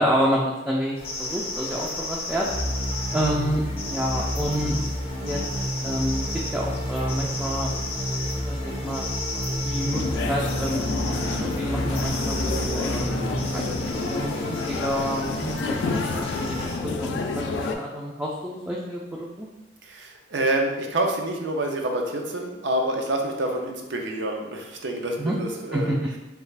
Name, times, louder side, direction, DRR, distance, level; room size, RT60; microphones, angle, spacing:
voice 1, 0.0-2.5 3.1-4.8 5.2-5.4 5.8-6.3 6.5-7.8 8.5-9.0 9.6-10.9 11.4-13.7 14.1-16.7 17.0-19.5 25.2-25.3 25.7-26.0, equal, 10° right, -4 dB, 0.3 m, -28 dB
sound 1, 1.0-16.8, left 2 dB, 35° left, 0.6 m, -34 dB
sound 2, 2.5-14.4, equal, 55° right, 1.0 m, -30 dB
sound 3, 9.9-17.8, left 3 dB, 75° left, 0.3 m, -29 dB
voice 2, 19.8-25.9, right 1 dB, 75° right, 2 dB, 0.5 m, -27 dB
3.3 x 2.4 x 3.2 m, 1.0 s
head